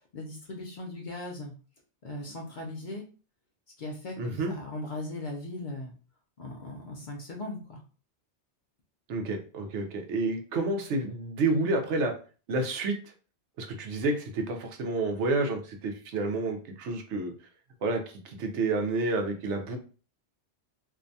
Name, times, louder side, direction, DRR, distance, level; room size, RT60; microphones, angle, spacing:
voice 1, 0.1-1.5 2.0-3.0 3.8-5.9 6.4-7.8, left 2 dB, 55° left, 0 dB, 0.6 m, -38 dB
voice 2, 4.2-4.5 9.1-12.1 12.5-13.0 13.6-17.3 17.8-19.8, right 2 dB, 80° right, 4 dB, 0.9 m, -29 dB
2.6 x 2.2 x 2.5 m, 0.37 s
omnidirectional pair, 1.2 m